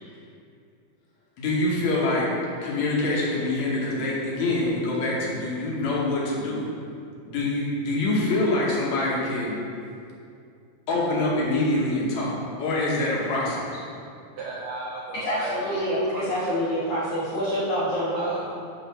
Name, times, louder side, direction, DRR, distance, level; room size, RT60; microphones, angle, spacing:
voice 1, 1.4-2.3 2.6-6.7 7.3-9.6 10.9-13.8 15.3-15.4 15.7-15.8, left 2 dB, 70° left, -5 dB, 1.8 m, -25 dB
voice 2, 14.4-16.3 18.1-18.5, right 2 dB, 90° right, -3 dB, 1.9 m, -36 dB
voice 3, 15.1-18.3, equal, 85° left, -8 dB, 1.3 m, -26 dB
6.8 x 5.0 x 6.3 m, 2.4 s
omnidirectional pair, 4.6 m